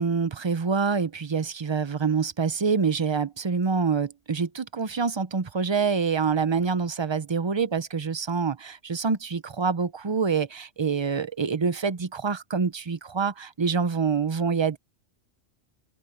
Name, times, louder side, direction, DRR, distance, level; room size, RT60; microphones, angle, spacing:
voice 1, 0.0-14.8, right 5 dB, 35° right, 0.4 m, -26 dB
open air
omnidirectional pair, 1.3 m